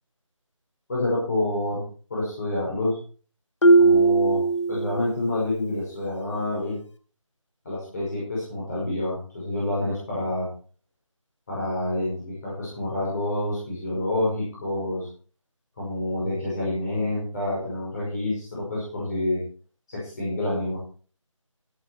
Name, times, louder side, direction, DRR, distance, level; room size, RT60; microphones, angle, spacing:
voice 1, 0.9-1.8 2.1-3.0 3.8-4.4 4.7-6.8 7.7-10.5 11.5-15.1 15.8-19.4 19.9-20.8, left 1 dB, 30° left, -7 dB, 5.5 m, -28 dB
Marimba xylophone, 3.6-5.4, right 3 dB, 60° left, 1.6 m, -19 dB
13.0 x 9.8 x 4.5 m, 0.40 s
figure-of-eight pair, 165°, 17 cm